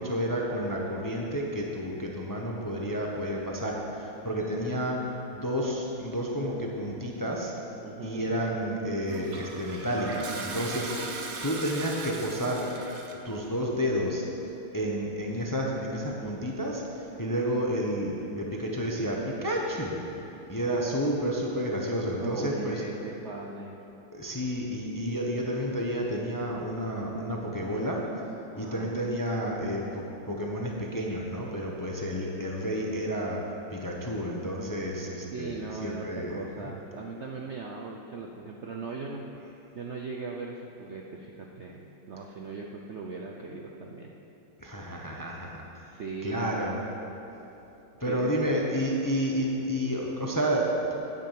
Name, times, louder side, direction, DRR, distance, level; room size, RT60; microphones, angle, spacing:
voice 1, 0.0-5.0 5.3-7.5 8.0-12.6 13.2-14.3 14.7-20.0 20.5-22.8 24.1-28.0 28.6-33.4 33.7-36.4 44.6-45.6 46.2-46.9 48.0-50.9, equal, 20° left, -1 dB, 0.6 m, -30 dB
voice 2, 7.8-8.3 22.2-23.8 28.5-28.9 35.3-39.2 39.7-44.1 45.9-46.5 47.9-48.6, right 3 dB, 90° right, 0 dB, 0.6 m, -39 dB
Toilet flush, 9.0-13.3, right 3 dB, 50° right, 1.2 m, -38 dB
9.8 x 8.5 x 7.5 m, 3.0 s
omnidirectional pair, 2.2 m